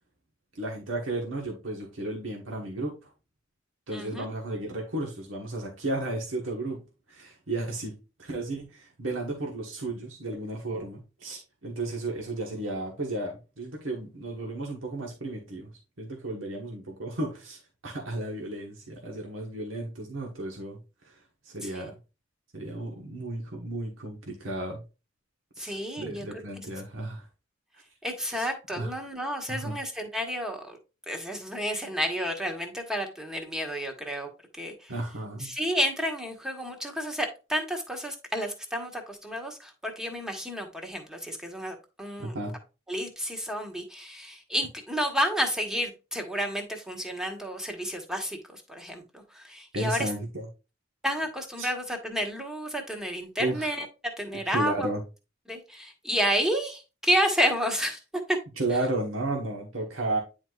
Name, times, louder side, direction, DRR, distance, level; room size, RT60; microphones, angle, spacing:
voice 1, 0.5-3.1 3.9-6.8 7.1-15.7 16.0-20.8 21.0-21.9 22.5-24.8 25.6-27.3 27.7-27.8 28.3-28.5 28.8-29.0 29.5-29.8 34.9-35.5 42.2-42.5 49.7-50.5 51.6-51.7 53.4-53.7 54.5-55.0 58.6-60.2, right 2 dB, 80° right, 1.4 m, -33 dB
voice 2, 3.9-4.3 21.6-21.9 25.6-26.2 28.0-30.8 31.1-34.3 34.6-34.7 35.4-42.3 42.9-50.1 51.0-53.8 54.2-54.9 55.5-58.0 58.3-58.4, equal, 5° right, 1.2 m, -30 dB
9.5 x 4.3 x 2.4 m
head